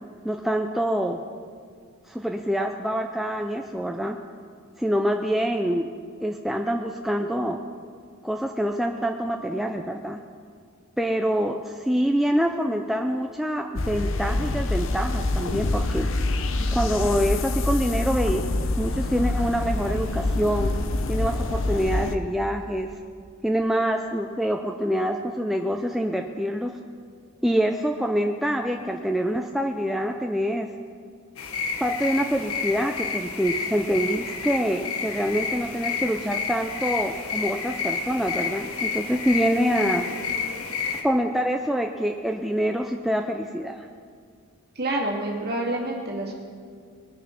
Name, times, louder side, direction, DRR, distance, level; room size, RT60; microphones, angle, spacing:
voice 1, 0.2-1.2 2.1-4.2 4.8-5.9 6.2-7.6 8.2-10.2 11.0-16.1 16.7-18.4 18.8-20.7 21.1-22.9 23.4-26.8 27.4-30.7 31.8-40.0 41.0-43.9, equal, ahead, 3 dB, 0.4 m, -25 dB
sound 1, 13.8-22.2, left 2 dB, 60° left, 0.7 m, -26 dB
sound 2, 31.4-41.0, left 6 dB, 80° left, 1.2 m, -30 dB
voice 2, 44.8-46.4, right 1 dB, 45° right, -2 dB, 2.2 m, -28 dB
20.5 x 6.8 x 5.9 m, 2.1 s
head